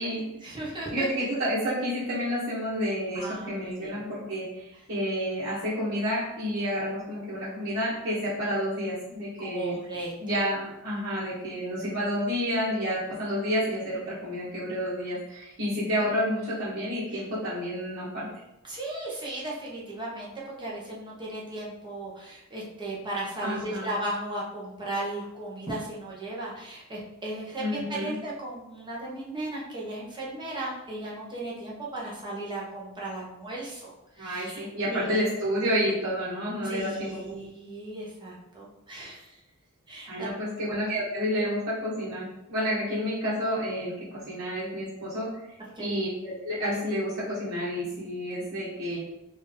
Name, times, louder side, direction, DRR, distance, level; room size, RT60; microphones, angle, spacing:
voice 1, 0.4-1.1 3.1-4.0 9.4-10.1 18.6-33.9 34.2-35.2 36.6-39.4 39.9-40.3 45.7-46.0, right 1 dB, 20° right, -5 dB, 1.1 m, -36 dB
voice 2, 0.9-9.8 10.2-18.3 23.4-23.9 27.6-28.1 34.2-37.2 40.1-45.3 45.8-49.0, equal, 50° right, -11 dB, 1.4 m, -30 dB
4.6 x 2.7 x 3.6 m, 0.90 s
head